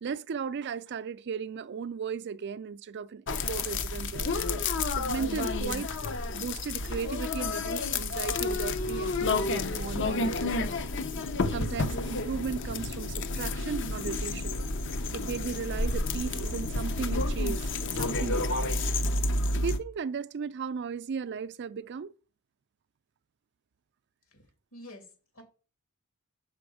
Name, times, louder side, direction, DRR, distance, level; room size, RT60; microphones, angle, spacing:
voice 1, 0.0-4.4 4.9-5.9 6.3-10.7 11.5-14.6 15.1-18.7 19.6-22.1, right 6 dB, 55° right, 0.4 m, -36 dB
sound 1, 3.3-19.8, left 2 dB, 60° left, 0.7 m, -30 dB
voice 2, 24.7-25.4, left 1 dB, 75° left, 2.8 m, -49 dB
7.0 x 5.9 x 4.8 m
head